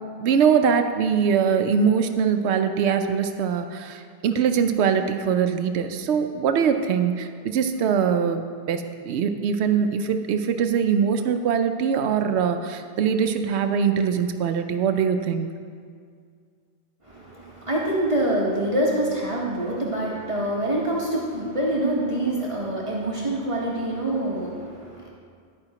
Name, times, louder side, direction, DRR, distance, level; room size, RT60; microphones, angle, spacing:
voice 1, 0.2-8.4 8.7-15.5, right 7 dB, 90° right, 7 dB, 0.9 m, -22 dB
voice 2, 17.0-25.1, right 1 dB, 30° right, -5 dB, 1.2 m, -26 dB
10.5 x 8.9 x 2.9 m, 2.1 s
omnidirectional pair, 1.1 m